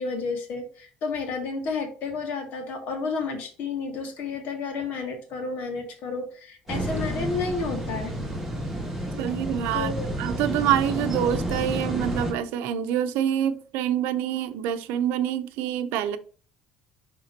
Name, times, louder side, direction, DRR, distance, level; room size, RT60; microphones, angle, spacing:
voice 1, 0.0-8.1 9.7-10.1, left 4 dB, 55° left, 2.0 m, -31 dB
sound 1, 6.7-12.3, right 1 dB, 5° right, 2.3 m, -30 dB
voice 2, 9.2-9.9 10.2-16.2, right 10 dB, 80° right, 0.7 m, -26 dB
11.0 x 3.7 x 2.9 m
cardioid pair, 155°, 3 cm